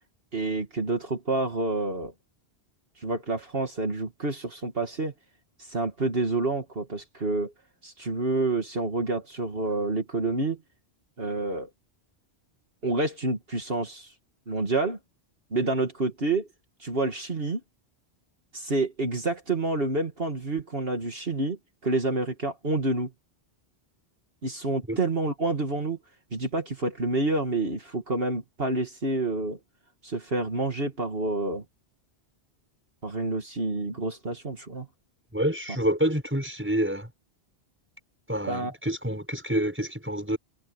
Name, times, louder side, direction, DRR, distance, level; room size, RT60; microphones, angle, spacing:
voice 1, 0.3-2.1 3.0-5.1 5.6-7.5 7.8-10.6 11.2-11.7 12.8-14.1 14.5-15.0 15.5-16.5 16.8-17.6 18.5-21.6 21.8-23.1 24.4-26.0 26.3-29.6 30.0-31.6 33.0-34.9 38.5-38.7, right 2 dB, 60° right, 2.6 m, -28 dB
voice 2, 35.3-37.1 38.3-40.4, right 1 dB, 10° right, 6.3 m, -27 dB
omnidirectional pair, 1.1 m